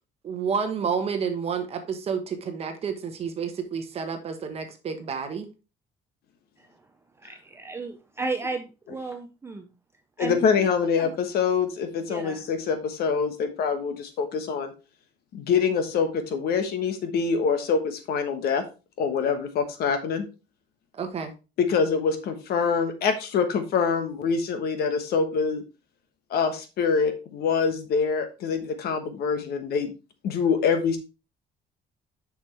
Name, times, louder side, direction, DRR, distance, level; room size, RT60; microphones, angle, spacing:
voice 1, 0.2-5.5 21.0-21.3, right 6 dB, 35° right, 6 dB, 1.1 m, -30 dB
voice 2, 7.2-9.7 10.2-10.7 11.0-11.1 12.1-12.4, right 3 dB, 15° right, 6 dB, 0.5 m, -34 dB
voice 3, 10.2-14.7 15.3-18.6 19.0-20.2 21.6-25.6 26.3-29.9 30.2-31.0, left 5 dB, 60° left, 8 dB, 1.2 m, -25 dB
7.1 x 6.1 x 3.3 m, 0.30 s
cardioid pair, 180°, 19 cm